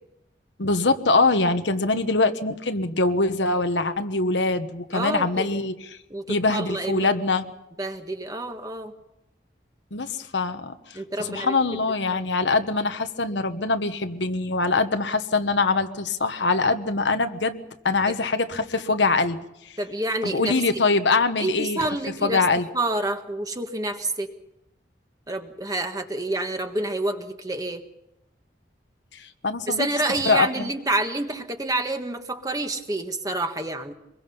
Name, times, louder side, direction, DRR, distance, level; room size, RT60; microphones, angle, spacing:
voice 1, 0.6-5.7 6.3-7.5 9.9-19.4 19.6-19.8 20.2-21.8 22.2-22.7 29.1-29.9 30.2-30.7, left 3 dB, 90° left, 8 dB, 1.3 m, -23 dB
voice 2, 4.9-5.5 6.1-7.1 7.8-8.9 10.9-11.8 12.1-12.2 18.1-18.2 19.8-20.5 21.4-22.4 22.7-24.3 25.3-27.8 29.7-33.9, right 2 dB, 20° right, 6 dB, 1.5 m, -28 dB
25.0 x 22.0 x 5.6 m, 0.89 s
head